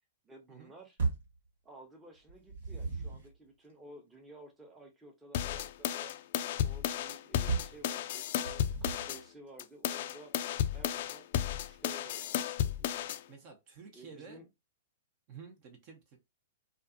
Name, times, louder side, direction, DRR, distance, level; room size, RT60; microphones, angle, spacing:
voice 1, 0.2-1.0 1.6-6.1 6.6-10.3 10.7-13.0 13.9-14.5, right 1 dB, 15° right, 0.8 m, -54 dB
sound 1, 1.0-1.4 2.3-3.3 7.5-7.8 8.4-9.2, right 4 dB, 70° right, 1.3 m, -35 dB
sound 2, 5.3-9.2 9.6-13.2, left 10 dB, 55° left, 0.3 m, -33 dB
voice 2, 13.3-14.4 15.3-16.2, right 5 dB, 45° right, 0.8 m, -51 dB
2.4 x 2.4 x 2.5 m
hypercardioid pair, 120°, 0 cm